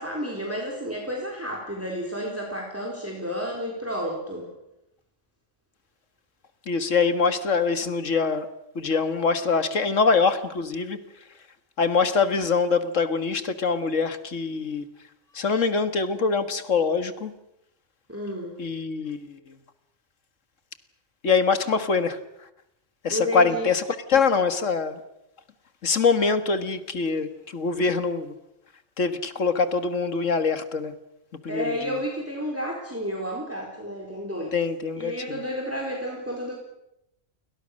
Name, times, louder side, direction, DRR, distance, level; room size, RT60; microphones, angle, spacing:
voice 1, 0.0-4.5 18.1-18.6 23.1-23.7 31.5-34.5 34.9-36.5, equal, 10° right, 0 dB, 4.0 m, -31 dB
voice 2, 6.7-8.5 8.8-11.0 11.8-14.8 15.3-17.3 18.6-19.4 21.2-22.2 23.0-25.0 25.8-28.3 29.0-30.9 31.4-32.0 34.5-35.4, left 5 dB, 80° left, 10 dB, 2.1 m, -24 dB
29.5 x 22.5 x 6.6 m, 0.84 s
omnidirectional pair, 1.3 m